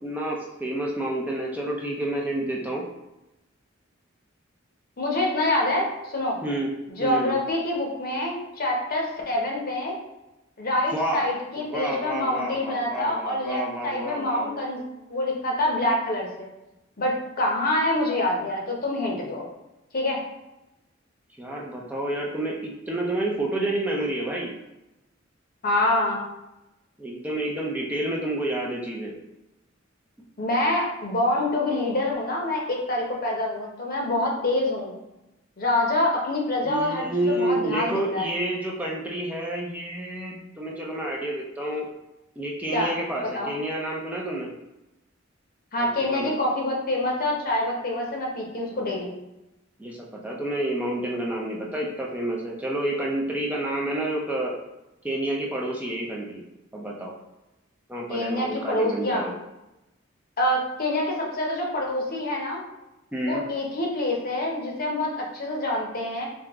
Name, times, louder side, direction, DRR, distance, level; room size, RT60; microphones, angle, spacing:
voice 1, 0.0-2.8 6.4-6.7 7.0-7.3 10.9-11.3 11.6-14.6 21.4-24.5 27.0-29.1 36.6-41.9 42.4-44.5 45.8-46.3 48.7-49.0 49.8-54.5 55.0-56.4 56.7-57.1 57.9-59.3 63.1-63.4, right 1 dB, 10° right, -3 dB, 0.5 m, -29 dB
voice 2, 5.0-6.4 6.9-10.0 10.6-14.8 15.1-16.5 17.0-19.5 19.9-20.2 25.6-26.2 30.4-34.9 35.6-38.3 42.7-42.9 43.3-43.5 45.7-49.1 58.1-59.3 60.4-62.6 63.2-66.2, left 1 dB, 50° left, -1 dB, 0.8 m, -26 dB
3.4 x 2.8 x 3.5 m, 0.95 s
head